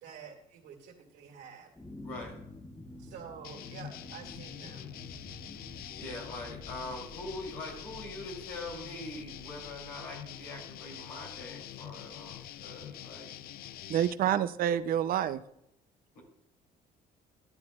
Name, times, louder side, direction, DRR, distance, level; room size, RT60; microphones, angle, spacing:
voice 1, 0.0-1.7 3.0-4.9, right 7 dB, 85° right, 1 dB, 2.1 m, -48 dB
sound 1, 1.7-15.4, left 1 dB, 10° left, 0.9 m, -51 dB
voice 2, 2.0-2.4 6.0-13.3 14.2-14.4 16.1-16.2, left 2 dB, 85° left, -2 dB, 3.0 m, -43 dB
sound 2, 3.4-14.1, left 12 dB, 65° left, 0.4 m, -45 dB
voice 3, 13.9-15.4, right 10 dB, 60° right, 12 dB, 0.5 m, -28 dB
11.5 x 10.5 x 2.3 m, 0.76 s
cardioid pair, 110°, 17 cm